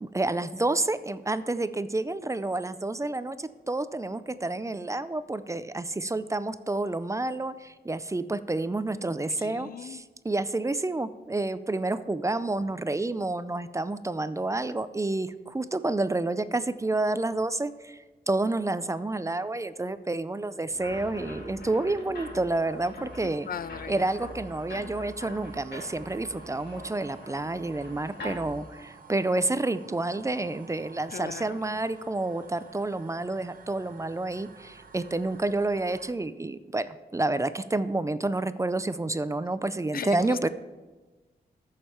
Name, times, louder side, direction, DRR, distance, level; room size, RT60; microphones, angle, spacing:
voice 1, 0.0-23.5 23.9-40.5, right 2 dB, 20° right, 13 dB, 0.4 m, -29 dB
voice 2, 9.4-10.0 23.2-24.1 31.1-31.8 39.9-40.5, left 8 dB, 60° left, 15 dB, 0.4 m, -38 dB
sound 1, 20.6-36.1, right 6 dB, 60° right, 1.0 m, -52 dB
sound 2, 20.7-28.7, left 1 dB, 85° left, 2.4 m, -43 dB
14.0 x 6.6 x 4.4 m, 1.2 s
cardioid pair, 85°, 17 cm